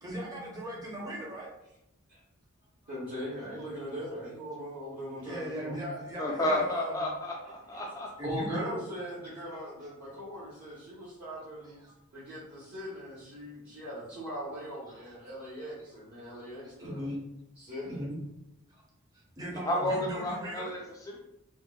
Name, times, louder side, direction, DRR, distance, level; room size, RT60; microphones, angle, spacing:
voice 1, 0.0-1.5 5.2-7.1 8.2-8.9 11.6-11.9 14.9-15.1 16.2-16.3 16.6-17.3 17.8-18.2 19.1-20.7, equal, 15° right, -3 dB, 0.7 m, -39 dB
voice 2, 2.9-5.9 7.7-7.8 8.2-11.8 12.1-17.0 17.6-18.0, equal, 50° right, -10 dB, 1.0 m, -40 dB
voice 3, 6.2-8.1 19.5-21.2, left 1 dB, 15° left, -1 dB, 0.4 m, -31 dB
4.3 x 2.1 x 2.2 m, 0.87 s
head